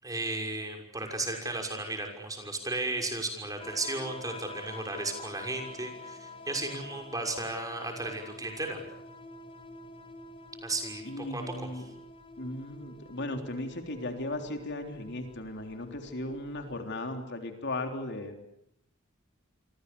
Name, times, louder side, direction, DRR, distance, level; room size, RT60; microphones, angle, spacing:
voice 1, 0.0-8.8 10.6-11.7, right 2 dB, 15° right, 3 dB, 6.1 m, -35 dB
sound 1, 3.6-16.8, left 2 dB, 25° left, 4.3 m, -48 dB
voice 2, 11.1-11.8 12.4-18.5, left 2 dB, 55° left, 4 dB, 3.6 m, -36 dB
29.0 x 25.0 x 7.0 m, 0.78 s
head